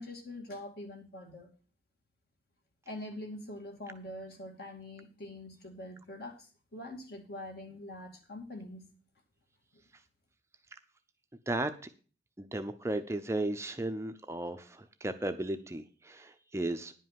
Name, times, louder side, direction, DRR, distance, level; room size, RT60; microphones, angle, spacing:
voice 1, 0.0-1.5 2.9-8.9, left 1 dB, 55° left, 2 dB, 2.5 m, -44 dB
voice 2, 12.4-16.9, right 1 dB, 15° right, 8 dB, 0.6 m, -35 dB
10.5 x 5.4 x 7.5 m, 0.38 s
head